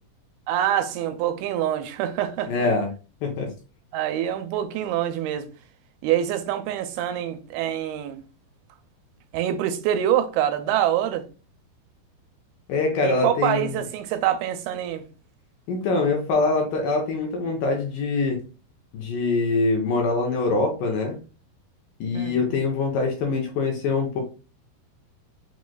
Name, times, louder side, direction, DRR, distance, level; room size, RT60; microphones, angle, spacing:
voice 1, 0.5-2.7 3.9-5.5 6.0-8.2 9.3-11.2 13.0-15.0 22.1-22.6, right 11 dB, 85° right, 2.5 m, -25 dB
voice 2, 2.5-2.9 3.2-3.5 12.7-13.8 15.7-18.4 18.9-21.2 22.0-24.2, left 3 dB, 75° left, 2.1 m, -24 dB
6.2 x 3.1 x 2.2 m
omnidirectional pair, 4.5 m